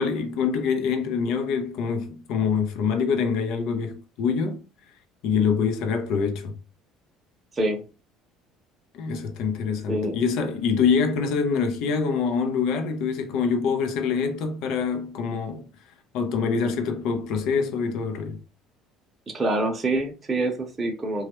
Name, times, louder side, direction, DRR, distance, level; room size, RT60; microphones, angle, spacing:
voice 1, 0.0-4.6 5.2-6.6 8.9-15.7 16.1-18.4, left 6 dB, 70° left, 0.6 m, -25 dB
voice 2, 7.5-7.8 9.9-10.2 19.3-21.3, right 2 dB, 20° right, 0.7 m, -26 dB
3.0 x 2.3 x 2.9 m
cardioid pair, 130°, 0 cm